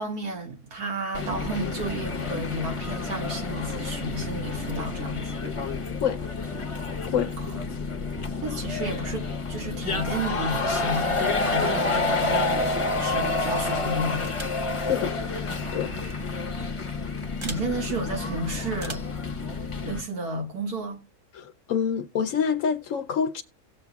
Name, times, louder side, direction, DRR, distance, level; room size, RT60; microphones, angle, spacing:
voice 1, 0.0-5.3 7.4-8.0 8.4-14.2 17.4-19.0 19.8-21.0, right 2 dB, 75° right, 2.4 m, -32 dB
sound 1, 1.1-20.0, left 3 dB, 30° left, 0.6 m, -29 dB
sound 2, 14.2-14.7 16.0-16.1 17.4-17.7 18.8-19.2, right 2 dB, 30° right, 0.6 m, -39 dB
voice 2, 14.8-15.1 15.7-15.9 21.3-23.4, left 7 dB, 65° left, 0.9 m, -27 dB
17.5 x 7.4 x 2.3 m
omnidirectional pair, 1.7 m